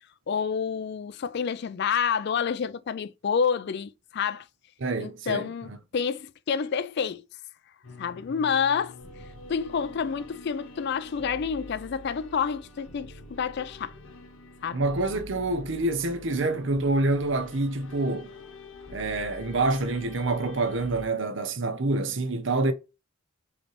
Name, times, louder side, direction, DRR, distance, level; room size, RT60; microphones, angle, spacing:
voice 1, 0.3-4.5 5.0-7.2 8.0-9.0 9.5-13.9 14.6-14.8, left 6 dB, 50° left, 0.3 m, -28 dB
voice 2, 4.8-5.8 14.7-18.3 18.9-22.7, right 2 dB, 60° right, 0.8 m, -27 dB
sound 1, 7.8-21.1, left 2 dB, 75° left, 1.2 m, -46 dB
5.0 x 3.2 x 3.1 m
head